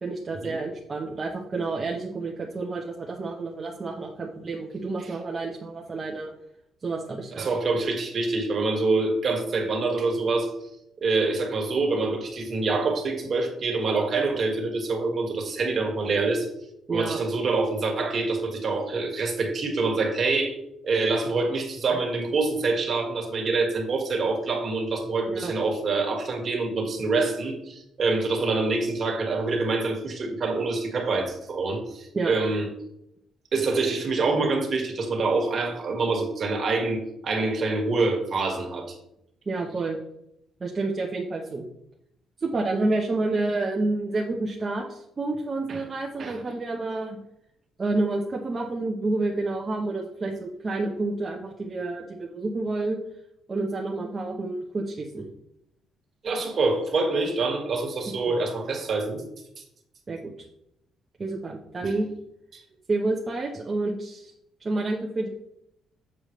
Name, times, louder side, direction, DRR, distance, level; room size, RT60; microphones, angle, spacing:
voice 1, 0.0-6.3 6.8-7.5 16.9-17.2 21.9-22.0 25.3-25.5 32.1-32.3 39.5-40.0 40.6-41.6 42.4-47.2 47.8-53.0 53.5-55.3 58.1-58.4 60.1-60.3 61.2-62.1 62.9-64.3 64.6-65.3, right 2 dB, 35° right, -1 dB, 1.0 m, -29 dB
voice 2, 7.4-10.5 11.0-16.5 16.9-20.6 20.8-32.7 33.5-39.0 45.7-45.8 46.2-46.4 56.2-59.2 61.8-61.9 62.5-62.6, right 3 dB, 50° right, 2 dB, 1.9 m, -26 dB
7.3 x 6.6 x 3.2 m, 0.79 s
cardioid pair, 85°, 0 cm